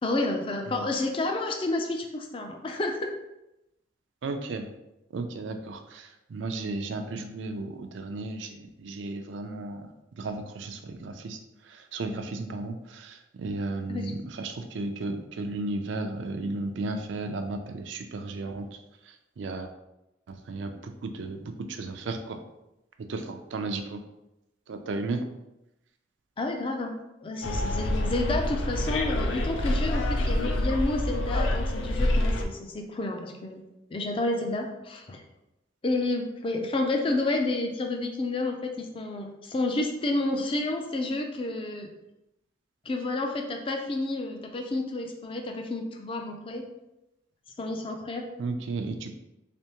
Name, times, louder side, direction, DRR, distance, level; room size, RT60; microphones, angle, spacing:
voice 1, 0.0-3.1 13.9-14.1 26.4-33.6 33.9-35.2 35.8-41.9 42.9-46.6 47.6-48.3, left 2 dB, 30° left, 3 dB, 0.4 m, -30 dB
voice 2, 4.2-4.7 5.1-9.9 10.2-11.4 11.6-18.7 19.1-19.7 20.3-22.4 23.1-24.0 24.7-25.2 48.4-49.1, right 3 dB, 80° right, 6 dB, 0.4 m, -34 dB
Bus, 27.4-32.4, left 1 dB, 85° left, 0.5 m, -27 dB
3.5 x 3.4 x 2.9 m, 0.91 s
head